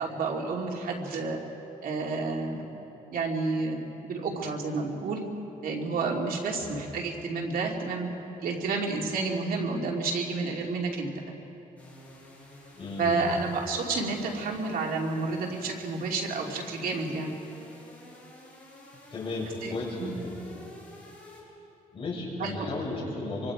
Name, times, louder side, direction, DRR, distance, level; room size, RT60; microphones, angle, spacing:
voice 1, 0.0-1.4 1.8-2.6 3.1-5.2 5.6-8.1 8.4-11.1 13.0-17.3 19.6-19.7 20.0-20.2 22.4-22.7, right 3 dB, 75° right, 0 dB, 2.7 m, -30 dB
sound 1, 11.8-21.4, left 1 dB, 10° left, 7.2 m, -49 dB
voice 2, 12.7-13.4 19.1-20.3 21.9-23.5, left 2 dB, 40° left, -5 dB, 7.1 m, -34 dB
27.0 x 24.5 x 4.9 m, 2.9 s
cardioid pair, 125°, 15 cm